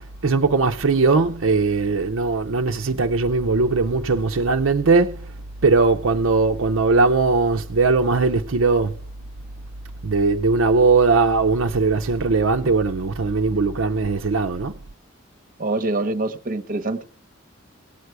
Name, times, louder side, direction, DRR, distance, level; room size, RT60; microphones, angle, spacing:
voice 1, 0.0-5.3 5.6-8.9 10.0-14.7, right 3 dB, 65° right, 0.6 m, -19 dB
voice 2, 15.6-17.0, right 2 dB, 40° right, 0.9 m, -25 dB
18.5 x 8.1 x 4.7 m
head